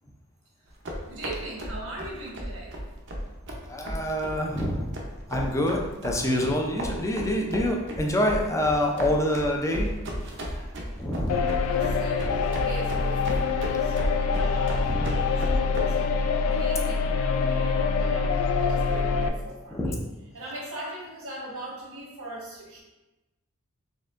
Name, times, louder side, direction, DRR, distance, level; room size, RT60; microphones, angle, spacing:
sound 1, 0.7-15.8, equal, 55° right, 0.7 m, -34 dB
voice 1, 1.1-2.7 11.7-16.0 16.4-19.9 20.3-22.8, right 2 dB, 75° right, -3 dB, 1.3 m, -40 dB
voice 2, 3.7-4.9 5.3-9.9 11.0-11.3 14.9-15.0 19.7-20.0, left 1 dB, 15° left, 0 dB, 0.4 m, -26 dB
sound 2, 11.3-19.3, left 5 dB, 80° left, 0.3 m, -25 dB
4.3 x 3.5 x 2.5 m, 1.0 s
head